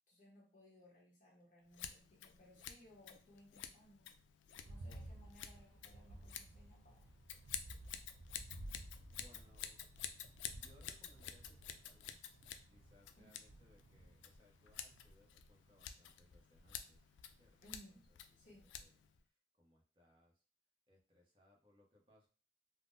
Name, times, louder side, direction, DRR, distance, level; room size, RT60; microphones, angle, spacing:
voice 1, 0.1-4.1 4.7-7.0 13.2-13.4 17.6-18.7, equal, 45° left, -3 dB, 1.1 m, -63 dB
Scissors, 1.7-19.2, left 9 dB, 80° left, 0.3 m, -51 dB
voice 2, 4.5-5.2 9.1-9.8 10.5-17.1 17.4-18.2 18.4-20.4 20.9-22.3, left 1 dB, 30° right, -1 dB, 0.7 m, -70 dB
sound 1, 4.5-15.9 16.6-17.0 17.4-17.5, right 1 dB, 90° right, 0.4 m, -56 dB
3.5 x 2.1 x 2.6 m, 0.37 s
head